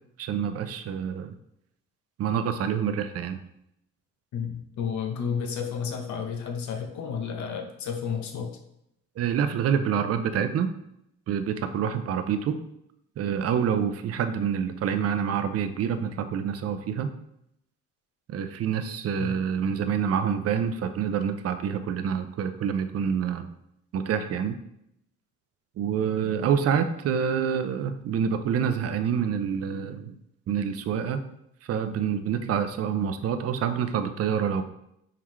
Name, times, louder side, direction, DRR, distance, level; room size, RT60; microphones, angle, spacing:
voice 1, 0.2-1.3 2.2-3.4 9.2-10.7 11.3-12.6 13.2-17.1 18.3-23.5 23.9-24.6 25.8-30.2 30.5-31.2 31.6-34.6, right 7 dB, 55° right, 9 dB, 0.5 m, -27 dB
voice 2, 4.3-8.6 19.2-19.3, left 6 dB, 70° left, 4 dB, 0.9 m, -31 dB
4.6 x 3.6 x 3.1 m, 0.77 s
cardioid pair, 90°, 30 cm